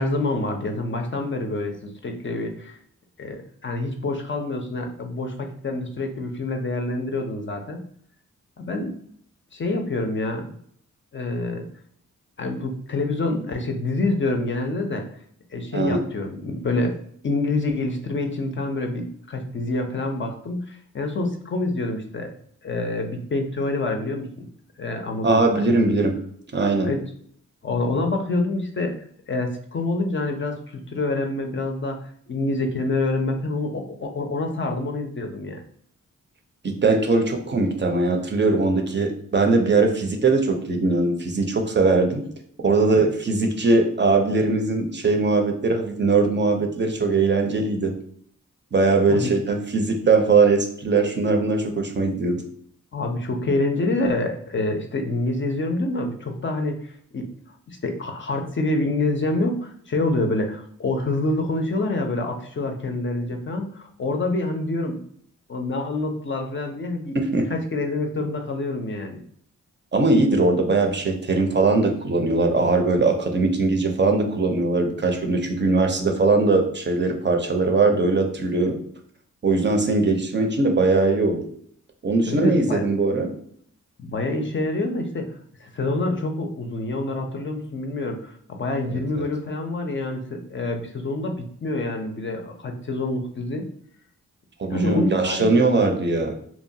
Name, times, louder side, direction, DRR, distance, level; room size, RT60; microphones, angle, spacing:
voice 1, 0.0-2.8 3.2-7.8 8.6-8.9 9.5-10.6 11.1-11.6 12.4-15.1 15.5-22.3 22.6-24.5 24.8-25.8 26.8-27.0 27.6-35.6 49.1-49.3 52.9-57.3 57.7-65.0 65.5-69.2 82.2-82.8 84.0-85.3 85.6-93.7 94.7-95.5, left 2 dB, 40° left, 3 dB, 0.5 m, -27 dB
voice 2, 25.2-26.1 26.5-26.9 36.6-42.2 42.6-47.9 48.7-52.4 67.1-67.4 69.9-78.8 79.4-81.4 82.0-83.3 89.2-89.3 94.6-96.4, right 3 dB, 35° right, 4 dB, 0.5 m, -20 dB
2.8 x 2.2 x 2.7 m, 0.63 s
cardioid pair, 55°, 31 cm